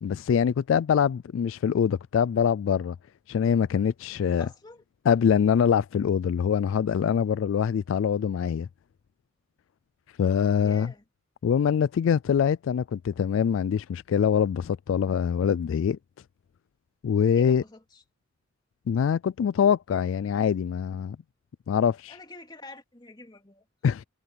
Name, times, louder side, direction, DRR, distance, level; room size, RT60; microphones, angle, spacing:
voice 1, 0.0-3.0 3.3-4.5 5.1-8.7 10.2-10.9 11.4-16.0 17.0-17.6 18.9-21.2 21.7-22.1 23.8-24.0, left 7 dB, 85° left, 0.3 m, -24 dB
voice 2, 4.4-4.8 10.6-11.0 17.3-18.0 22.1-23.6, left 2 dB, 20° left, 2.5 m, -47 dB
head